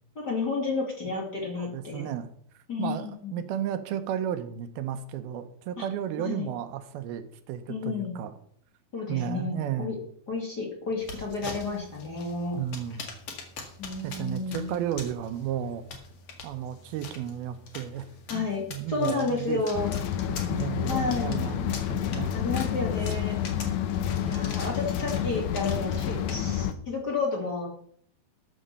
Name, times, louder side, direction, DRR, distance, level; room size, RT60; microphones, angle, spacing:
voice 1, 0.2-2.0 2.7-3.4 5.8-5.9 6.2-6.5 7.7-8.1 8.9-10.0 10.3-12.6 13.8-14.8 18.3-19.9 20.9-21.5 22.3-23.4 24.2-27.7, left 3 dB, 30° left, -1 dB, 2.2 m, -31 dB
voice 2, 1.6-2.3 2.8-8.3 9.1-9.9 12.6-13.0 14.0-15.8 16.4-18.1 18.3-19.6 20.3-22.4, right 10 dB, 85° right, 10 dB, 2.8 m, -33 dB
sound 1, 11.0-26.7, left 4 dB, 50° left, 2.7 m, -44 dB
sound 2, 19.7-26.7, left 10 dB, 80° left, 1.7 m, -29 dB
13.0 x 6.4 x 6.7 m, 0.64 s
omnidirectional pair, 4.3 m